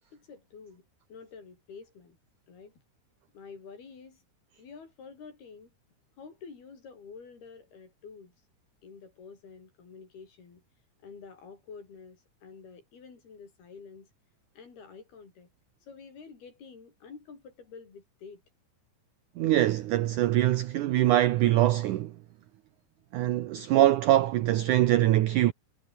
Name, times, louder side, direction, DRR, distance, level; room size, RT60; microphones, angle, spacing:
voice 1, 0.1-2.2 2.5-2.7 3.3-4.2 4.6-5.7 6.2-8.3 8.8-10.6 11.0-14.1 14.6-15.5 15.8-18.4, left 5 dB, 70° left, 7.6 m, -49 dB
voice 2, 19.4-22.1 23.1-25.5, right 14 dB, 80° right, 1.7 m, -23 dB
omnidirectional pair, 4.7 m